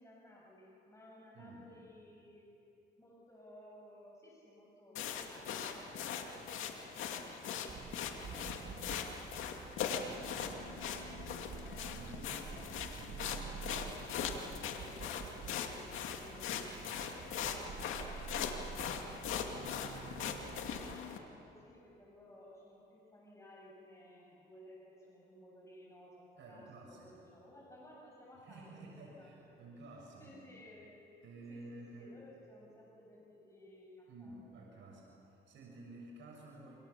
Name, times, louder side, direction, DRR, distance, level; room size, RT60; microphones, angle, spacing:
voice 1, 0.0-2.5 3.0-13.0 13.7-17.4 17.8-19.1 19.8-29.6 30.2-30.9 31.5-34.7, left 1 dB, 15° left, -4 dB, 7.4 m, -58 dB
sound 1, 5.0-21.2, left 7 dB, 85° left, 2.3 m, -41 dB
sound 2, 7.7-20.9, right 6 dB, 50° right, 1.7 m, -49 dB
voice 2, 11.9-12.4 13.0-13.4 26.4-27.1 28.4-30.3 31.2-32.2 34.1-36.8, right 2 dB, 70° right, -2 dB, 6.9 m, -52 dB
29.0 x 27.0 x 7.3 m, 2.8 s
cardioid pair, 90°, 20 cm